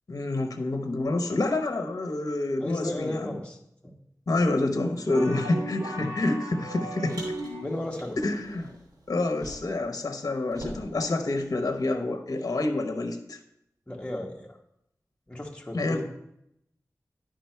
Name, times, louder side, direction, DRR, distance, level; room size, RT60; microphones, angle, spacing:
voice 1, 0.1-3.4 4.3-7.2 8.2-8.7 9.1-13.4 15.7-16.0, left 2 dB, 65° left, 6 dB, 0.9 m, -28 dB
voice 2, 2.6-3.6 3.8-3.9 5.2-5.4 7.6-8.3 13.9-14.6 15.3-16.0, left 1 dB, 15° left, 0 dB, 1.3 m, -34 dB
sound 1, 5.1-8.0, right 1 dB, 70° right, 2.6 m, -37 dB
Car, 7.1-9.9 10.1-12.0, right 1 dB, 85° right, 2.6 m, -46 dB
10.5 x 5.1 x 4.5 m, 0.79 s
wide cardioid pair, 70°, 6 cm